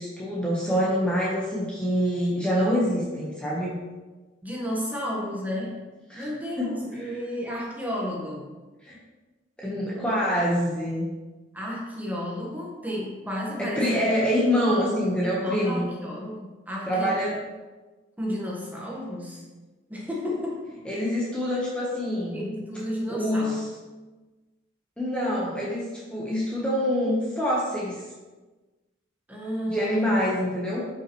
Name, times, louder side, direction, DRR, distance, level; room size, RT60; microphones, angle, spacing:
voice 1, 0.0-3.7 6.1-6.3 6.6-6.7 7.0-7.1 8.8-9.0 9.6-11.1 13.6-15.9 16.9-17.4 20.8-22.4 23.1-23.6 25.0-28.0 29.7-30.9, equal, 5° left, -7 dB, 1.2 m, -26 dB
voice 2, 4.4-5.8 6.1-8.5 11.5-14.0 15.2-17.2 18.2-19.4 19.9-20.7 22.3-23.6 29.3-30.1, equal, 10° right, -4 dB, 1.5 m, -32 dB
8.7 x 5.5 x 3.2 m, 1.2 s
head